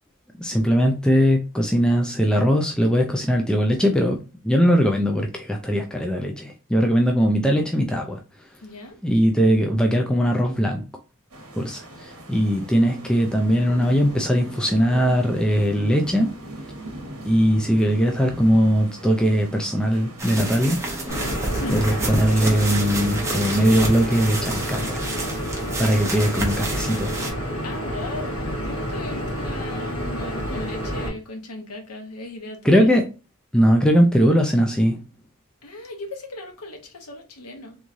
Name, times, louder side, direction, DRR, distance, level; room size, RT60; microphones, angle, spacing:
voice 1, 0.4-4.2 4.4-8.2 9.0-10.8 11.6-16.3 17.2-20.8 21.7-25.0 25.8-27.2 32.6-33.0 33.5-35.0, equal, 5° left, 0.3 m, -20 dB
voice 2, 8.6-9.0 21.5-21.8 27.6-32.9 35.6-37.8, left 2 dB, 85° left, 1.0 m, -37 dB
sound 1, 11.3-24.0, right 1 dB, 75° right, 1.1 m, -40 dB
sound 2, 20.2-27.3, right 1 dB, 15° right, 0.8 m, -29 dB
sound 3, 21.1-31.1, equal, 65° left, 1.7 m, -29 dB
3.5 x 3.1 x 2.6 m
head